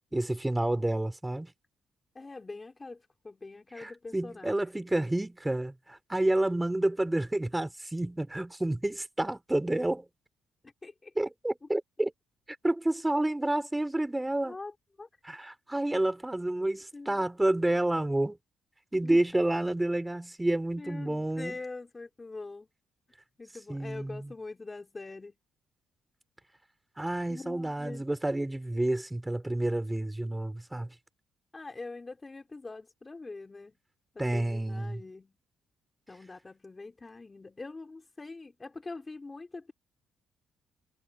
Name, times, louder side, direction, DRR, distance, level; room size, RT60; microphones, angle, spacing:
voice 1, 0.1-1.5 3.8-10.0 11.2-12.1 12.6-14.6 15.2-18.4 18.9-21.6 23.7-24.3 27.0-30.9 34.2-35.0, right 1 dB, 10° right, 4.1 m, -29 dB
voice 2, 2.2-4.6 10.8-11.1 14.4-14.7 15.0-15.1 16.9-17.2 19.0-19.2 20.8-22.7 23.4-25.4 27.3-28.1 31.5-33.7 34.2-35.3 36.1-39.7, left 3 dB, 25° left, 3.5 m, -43 dB
cardioid pair, 90°, 0 cm